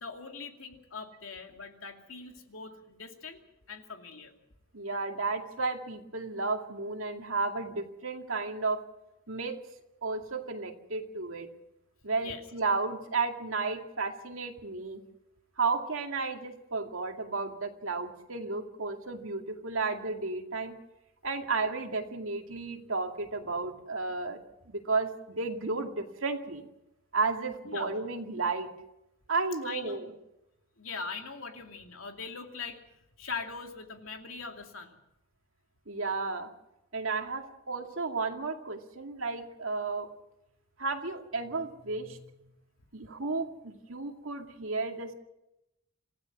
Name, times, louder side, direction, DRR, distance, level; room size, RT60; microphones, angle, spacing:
voice 1, 0.0-3.4 3.7-4.3 12.1-12.4 27.6-27.9 29.6-30.0 30.8-32.8 33.2-35.0, left 4 dB, 90° left, 4 dB, 2.6 m, -41 dB
voice 2, 4.7-8.8 9.3-9.6 10.0-11.5 12.0-15.0 15.6-20.8 21.2-24.4 24.7-26.6 27.1-28.7 29.3-30.1 35.9-36.5 36.9-40.1 40.8-42.2 42.9-45.1, right 3 dB, 85° right, 3 dB, 2.4 m, -33 dB
27.0 x 15.5 x 6.1 m, 0.88 s
head